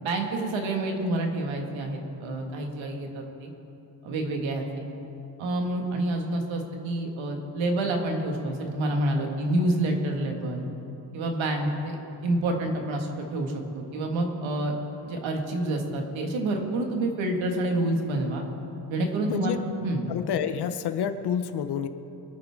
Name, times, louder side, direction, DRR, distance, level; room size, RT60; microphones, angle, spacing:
voice 1, 0.0-3.5 4.0-4.7 5.4-10.7 11.1-12.0 12.2-14.7 15.0-18.4 18.9-20.0, right 1 dB, 90° right, 2 dB, 1.9 m, -28 dB
voice 2, 19.3-19.6 20.1-21.9, left 8 dB, 60° left, 10 dB, 0.8 m, -28 dB
24.0 x 9.1 x 3.6 m, 2.9 s
cardioid pair, 170°, 45 cm